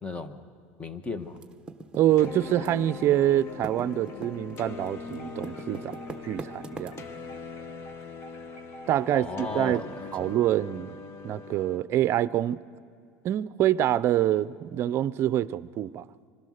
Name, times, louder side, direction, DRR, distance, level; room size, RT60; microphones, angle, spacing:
voice 1, 0.0-0.5 0.8-1.4 9.0-9.9 10.2-10.3, left 3 dB, 20° left, 1.3 m, -35 dB
Typing, 1.4-3.1 3.3-7.3, right 4 dB, 15° right, 1.2 m, -40 dB
voice 2, 1.9-6.0 6.2-7.0 8.9-9.8 10.1-11.0 11.2-12.6 13.2-16.1, right 12 dB, 45° right, 0.5 m, -26 dB
Wind chime, 2.2-9.6, left 1 dB, 65° left, 5.5 m, -50 dB
sound 1, 2.2-11.8, left 5 dB, 45° left, 1.3 m, -41 dB
25.5 x 20.5 x 6.5 m
supercardioid pair, 120°, 6 cm